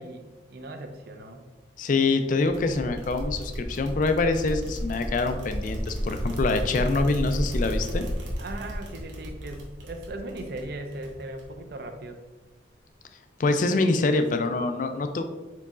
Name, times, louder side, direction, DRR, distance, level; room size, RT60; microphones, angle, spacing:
voice 1, 0.0-1.4 8.4-12.2, right 2 dB, 55° right, 6 dB, 0.5 m, -38 dB
voice 2, 1.8-8.0 13.4-15.2, left 3 dB, 45° left, 7 dB, 0.3 m, -25 dB
sound 1, 2.5-11.7, equal, 85° right, 0.9 m, -33 dB
4.5 x 3.9 x 2.4 m, 1.2 s
head